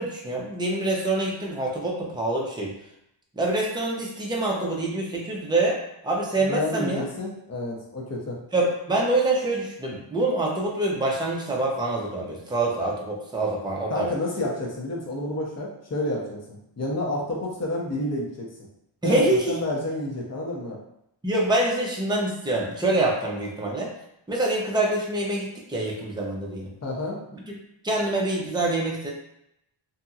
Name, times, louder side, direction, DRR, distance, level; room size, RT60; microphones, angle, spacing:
voice 1, 0.0-2.7 3.4-5.8 6.0-7.0 8.5-14.1 19.0-19.6 21.2-23.9 24.3-26.7 27.8-29.1, right 2 dB, 10° right, -3 dB, 0.6 m, -25 dB
voice 2, 6.4-8.4 13.9-18.5 19.0-20.8 26.8-27.2, left 1 dB, 30° left, -3 dB, 0.8 m, -30 dB
2.7 x 2.7 x 2.4 m, 0.79 s
cardioid pair, 90°, 50 cm